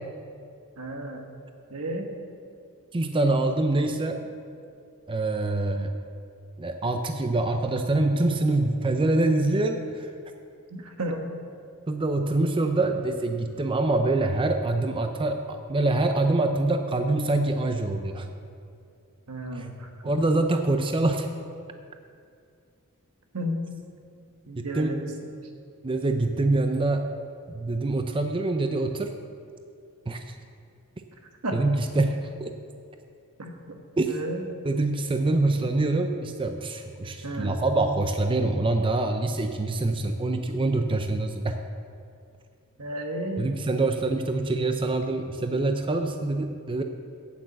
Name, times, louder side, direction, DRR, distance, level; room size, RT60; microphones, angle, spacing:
voice 1, 0.8-1.3 1.7-2.1 10.7-11.2 19.3-20.2 23.3-23.6 24.5-25.5 31.4-31.6 33.4-33.8 34.1-34.4 37.2-37.6 42.8-43.5, right 1 dB, 80° right, 3 dB, 1.3 m, -33 dB
voice 2, 2.9-4.2 5.1-6.0 6.6-10.1 11.9-18.3 19.5-19.7 20.0-21.3 24.6-25.0 25.8-27.1 27.5-29.1 30.1-30.3 31.5-32.1 32.4-32.5 34.0-34.1 34.6-41.6 43.4-46.8, right 2 dB, 25° right, 6 dB, 0.5 m, -25 dB
8.7 x 8.0 x 7.8 m, 2.4 s
head